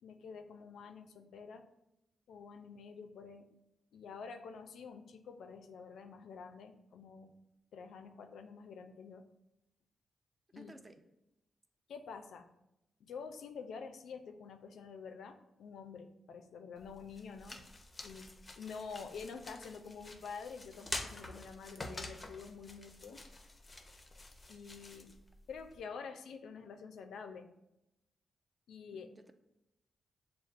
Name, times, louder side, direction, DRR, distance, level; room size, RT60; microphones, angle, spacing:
voice 1, 0.0-1.6 2.3-3.5 3.9-7.3 7.7-9.2 10.5-10.8 11.9-12.5 13.0-17.6 18.0-23.2 24.5-25.1 25.5-27.5 28.7-29.1, left 5 dB, 80° left, 0.3 m, -48 dB
voice 2, 10.6-11.0 28.9-29.3, right 1 dB, 20° right, 0.4 m, -55 dB
sound 1, 16.8-25.8, left 2 dB, 25° left, 0.5 m, -48 dB
6.4 x 2.3 x 2.5 m
cardioid pair, 70°, 0 cm